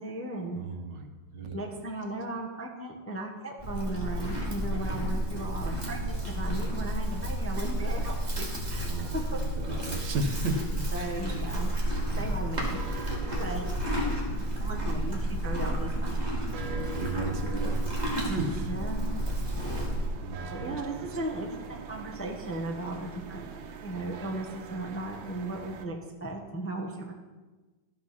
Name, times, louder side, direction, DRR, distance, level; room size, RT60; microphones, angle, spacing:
voice 1, 0.0-0.6 1.5-9.4 10.9-11.7 12.0-12.8 13.3-13.7 14.6-16.3 18.7-19.1 20.5-23.5 23.8-27.1, right 1 dB, 10° left, 0 dB, 0.8 m, -36 dB
voice 2, 0.5-1.6 8.7-10.9 12.9-13.2 16.5-17.9 18.2-18.7 20.2-21.1, right 2 dB, 65° right, 5 dB, 1.6 m, -35 dB
Livestock farm animals working animals, 3.6-20.1, right 1 dB, 20° right, 2.0 m, -31 dB
sound 1, 11.2-25.9, right 5 dB, 85° right, 1.6 m, -43 dB
13.0 x 5.8 x 6.0 m, 1.3 s
omnidirectional pair, 2.1 m